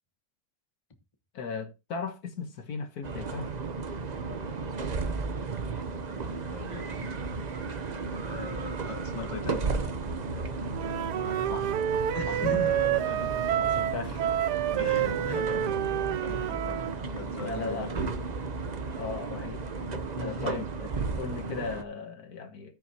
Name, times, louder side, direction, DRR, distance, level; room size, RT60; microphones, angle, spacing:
voice 1, 1.3-3.5 11.2-11.8 12.3-12.6 13.6-14.2 16.5-16.8 17.4-17.9 19.0-19.6 20.2-22.8, left 5 dB, 65° left, 1.7 m, -37 dB
sound 1, 3.0-21.8, right 4 dB, 40° right, 0.6 m, -34 dB
voice 2, 6.3-7.0 8.2-9.7 12.1-13.4 14.8-15.8 16.2-16.6 17.1-18.4 20.1-20.6, left 3 dB, 20° left, 1.2 m, -39 dB
Wind instrument woodwind instrument, 10.7-17.0, right 11 dB, 80° right, 1.2 m, -28 dB
14.0 x 6.2 x 2.9 m
omnidirectional pair, 1.8 m